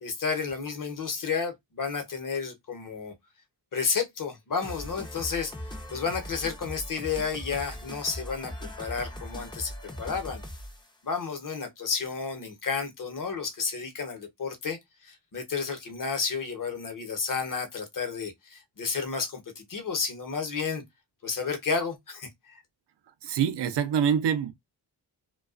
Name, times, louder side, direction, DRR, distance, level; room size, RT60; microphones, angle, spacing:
voice 1, 0.0-3.1 3.7-5.5 5.9-9.7 10.0-10.4 11.0-20.8 21.2-22.6, left 5 dB, 50° left, 0.9 m, -31 dB
sound 1, 4.6-10.9, left 1 dB, 10° left, 0.5 m, -40 dB
voice 2, 23.2-24.5, right 8 dB, 75° right, 0.6 m, -25 dB
2.3 x 2.3 x 2.3 m
cardioid pair, 65°, 42 cm